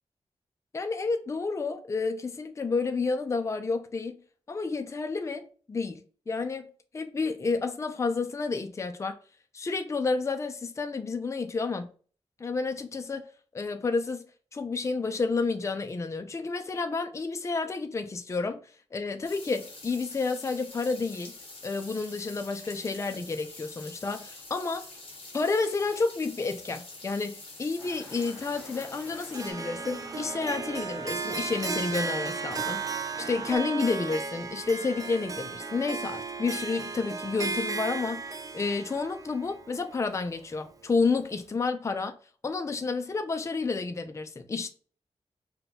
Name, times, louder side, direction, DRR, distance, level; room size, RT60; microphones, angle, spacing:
voice 1, 0.7-4.2 4.5-6.0 6.3-9.2 9.5-11.9 12.4-14.2 14.5-18.6 18.9-21.3 21.6-24.8 25.3-42.2 42.4-44.7, left 4 dB, 25° left, 0.4 m, -30 dB
sound 1, 19.2-29.5, left 3 dB, 55° left, 1.0 m, -46 dB
sound 2, 27.8-33.6, left 1 dB, ahead, 1.5 m, -48 dB
Harp, 29.3-40.6, right 4 dB, 30° right, 0.5 m, -35 dB
4.2 x 2.2 x 3.7 m
wide cardioid pair, 125°, 11 cm